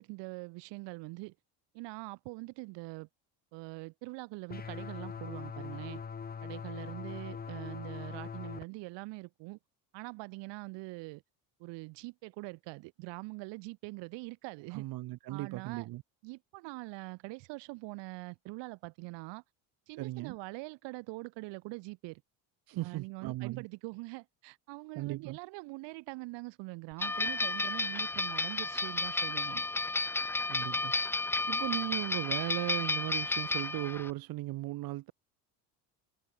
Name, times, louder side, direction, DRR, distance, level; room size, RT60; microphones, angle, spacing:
voice 1, 0.0-1.3 1.7-3.1 3.5-6.0 6.4-9.6 9.9-11.2 11.6-14.8 15.3-15.9 16.2-19.4 19.9-22.2 22.8-29.6, right 25 dB, 75° right, 4.6 m, -43 dB
sound 1, 4.5-8.6, left 6 dB, 20° left, 1.1 m, -42 dB
voice 2, 14.7-16.0 20.0-20.4 22.7-23.7 24.9-25.4 30.5-30.9 31.5-35.1, right 17 dB, 55° right, 1.0 m, -37 dB
sound 2, 27.0-34.1, left 2 dB, 5° left, 0.4 m, -32 dB
supercardioid pair, 110°, 43 cm